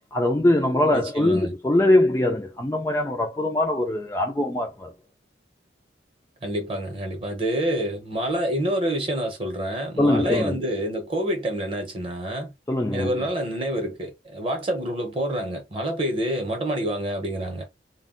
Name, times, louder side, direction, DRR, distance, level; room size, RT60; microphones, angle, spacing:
voice 1, 0.1-4.9 10.0-10.6 12.7-13.1, left 1 dB, 15° left, 0.3 m, -22 dB
voice 2, 0.9-1.5 6.4-12.5 12.9-17.6, right 1 dB, 30° right, 0.8 m, -27 dB
2.3 x 2.1 x 3.7 m
head